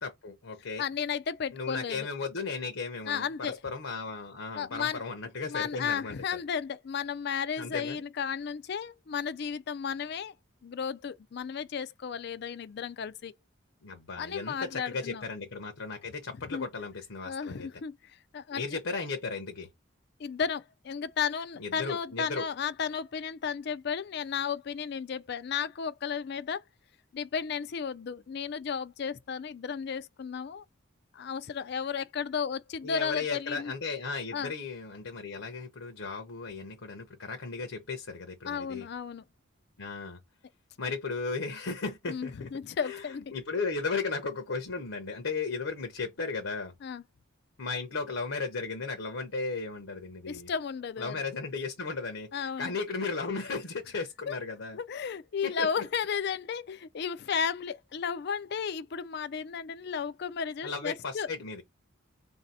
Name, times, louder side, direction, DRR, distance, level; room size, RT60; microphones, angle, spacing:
voice 1, 0.0-0.8 1.5-6.1 7.6-8.0 13.8-17.7 18.5-19.7 21.6-22.4 32.8-38.9 39.8-40.2 40.8-42.5 42.8-43.0 43.3-46.7 47.6-50.5 51.0-54.8 55.4-55.7 60.6-61.6, left 4 dB, 70° left, 0.8 m, -35 dB
voice 2, 0.8-2.1 3.1-3.6 4.6-5.0 5.5-10.3 10.6-13.4 14.2-15.2 16.4-16.7 17.3-18.8 20.2-26.6 27.1-30.6 31.1-33.7 34.3-34.5 38.5-39.2 42.1-43.3 46.8-47.0 50.3-51.2 52.3-52.8 54.3-54.4 54.7-61.3, left 6 dB, 50° left, 0.4 m, -34 dB
3.9 x 2.7 x 4.1 m
head